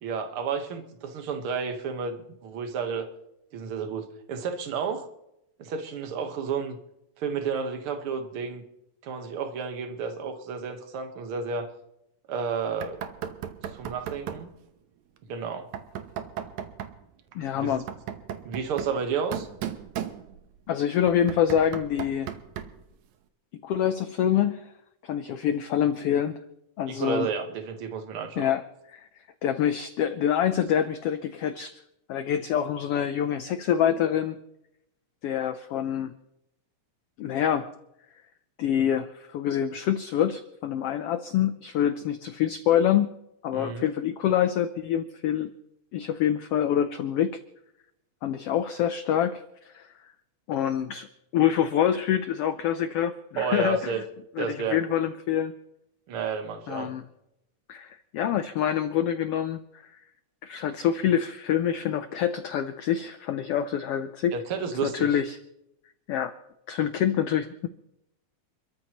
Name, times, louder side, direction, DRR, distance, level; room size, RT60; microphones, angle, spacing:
voice 1, 0.0-3.1 3.5-5.1 5.6-6.8 7.2-8.6 9.0-11.7 12.3-13.0 13.6-14.5 15.3-15.7 17.5-17.8 18.4-19.5 26.9-28.5 43.5-43.9 53.4-54.0 54.4-54.8 56.1-56.9 64.3-65.2, right 5 dB, 55° right, 6 dB, 1.9 m, -31 dB
Knock, 12.8-14.5 15.7-17.0 17.7-20.6 21.1-22.9, right 9 dB, 75° right, 2.2 m, -37 dB
voice 2, 17.3-17.8 20.7-22.3 23.6-24.7 25.0-26.4 26.8-27.3 28.4-28.6 28.9-29.1 29.4-31.8 32.1-34.4 35.2-36.1 37.2-37.7 38.6-43.1 43.4-45.5 45.9-47.4 48.2-49.9 50.5-51.1 51.3-54.0 54.4-55.5 56.7-57.0 57.7-59.6 60.4-64.3 64.8-65.4 66.1-66.3 66.7-67.7, left 9 dB, 90° left, 9 dB, 1.3 m, -26 dB
28.0 x 13.5 x 3.0 m, 0.84 s
omnidirectional pair, 3.6 m